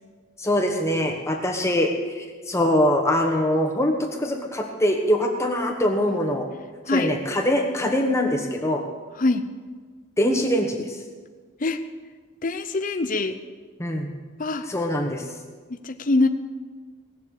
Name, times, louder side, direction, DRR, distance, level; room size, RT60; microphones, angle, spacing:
voice 1, 0.4-6.5 6.9-8.8 10.2-11.0 13.8-14.1 14.7-15.2, left 1 dB, 15° left, 2 dB, 1.1 m, -23 dB
voice 2, 12.4-13.4 14.4-14.7 15.7-16.3, left 2 dB, 40° left, 7 dB, 0.7 m, -23 dB
18.5 x 7.5 x 8.3 m, 1.5 s
head